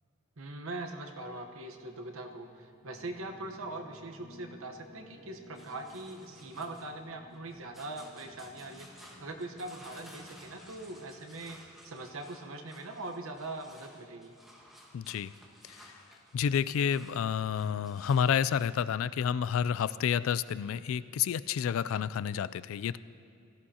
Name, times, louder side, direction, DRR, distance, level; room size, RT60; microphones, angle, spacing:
voice 1, 0.4-14.3, right 2 dB, 80° right, 5 dB, 1.1 m, -42 dB
sound 1, 1.6-11.6, left 1 dB, 50° left, 1.9 m, -57 dB
sound 2, 5.5-18.8, equal, ahead, 1.4 m, -56 dB
voice 2, 14.9-15.3 15.6-15.9 16.3-23.0, left 8 dB, 75° left, 17 dB, 0.3 m, -30 dB
17.5 x 13.5 x 2.8 m, 2.5 s
head